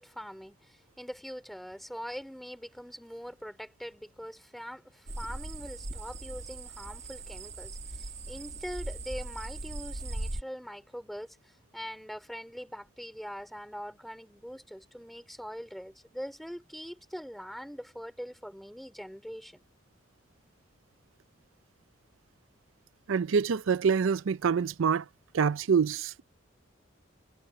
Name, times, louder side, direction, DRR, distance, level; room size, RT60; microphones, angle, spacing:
voice 1, 0.0-19.6, equal, ahead, 3.1 m, -43 dB
sound 1, 5.1-10.4, right 2 dB, 30° right, 1.6 m, -39 dB
voice 2, 23.1-25.0 25.3-26.2, right 6 dB, 80° right, 0.5 m, -26 dB
head